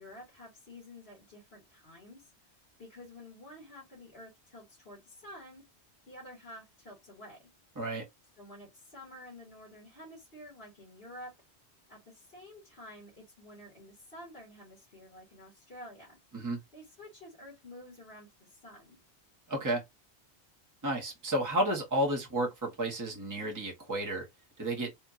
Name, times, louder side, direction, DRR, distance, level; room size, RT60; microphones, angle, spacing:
voice 1, 0.0-2.3 2.8-5.6 6.1-7.4 8.4-11.3 11.9-16.2 16.7-19.0, left 1 dB, 55° left, 2.2 m, -50 dB
voice 2, 19.5-19.8 20.8-24.3 24.6-24.9, right 1 dB, 15° right, 1.1 m, -31 dB
4.3 x 2.5 x 2.5 m
omnidirectional pair, 1.2 m